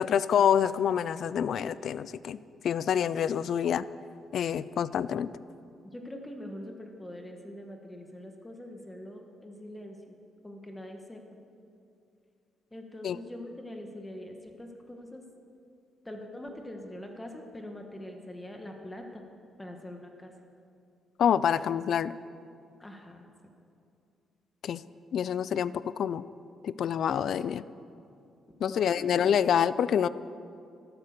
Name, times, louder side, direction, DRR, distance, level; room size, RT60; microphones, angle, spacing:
voice 1, 0.0-2.4 2.6-3.8 4.3-5.3 13.0-13.2 21.2-22.1 24.6-24.8 25.1-26.2 26.6-27.6 28.6-30.1, left 8 dB, 65° left, 17 dB, 0.4 m, -27 dB
voice 2, 5.8-10.2 10.4-11.2 12.7-15.2 16.1-19.2 19.6-20.3 22.8-23.3 28.6-29.3, left 1 dB, 15° left, 3 dB, 1.6 m, -43 dB
12.5 x 12.5 x 6.8 m, 2.5 s
cardioid pair, 90°, 0 cm